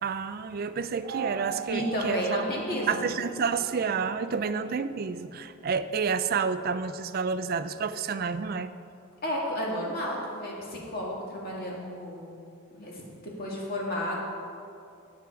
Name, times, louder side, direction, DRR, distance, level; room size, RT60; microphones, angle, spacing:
voice 1, 0.0-2.2 2.9-8.7, right 5 dB, 40° right, 12 dB, 0.3 m, -29 dB
sound 1, 1.0-5.6, right 6 dB, 85° right, 0.8 m, -40 dB
voice 2, 1.7-3.1 9.2-12.3 12.7-14.2, equal, 40° left, -3 dB, 2.1 m, -32 dB
9.4 x 9.3 x 4.8 m, 2.5 s
head